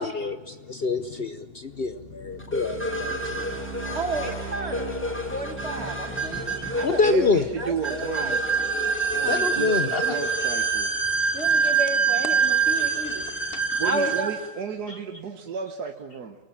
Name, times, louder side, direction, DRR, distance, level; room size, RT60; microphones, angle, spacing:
voice 1, 0.0-3.5 6.8-7.5 9.3-10.2 13.5-13.6 14.9-15.0, left 4 dB, 45° left, 0.8 m, -26 dB
sound 1, 1.6-10.4, right 4 dB, 65° left, 6.9 m, -40 dB
sound 2, 2.5-14.5, right 5 dB, 5° left, 1.8 m, -26 dB
voice 2, 3.9-7.3 7.6-8.4 9.2-9.5 11.3-13.2 13.8-14.3, right 1 dB, 40° right, 2.2 m, -32 dB
voice 3, 7.1-8.4 9.1-10.9 13.8-16.4, right 6 dB, 65° right, 1.6 m, -33 dB
27.5 x 18.5 x 7.4 m
omnidirectional pair, 1.8 m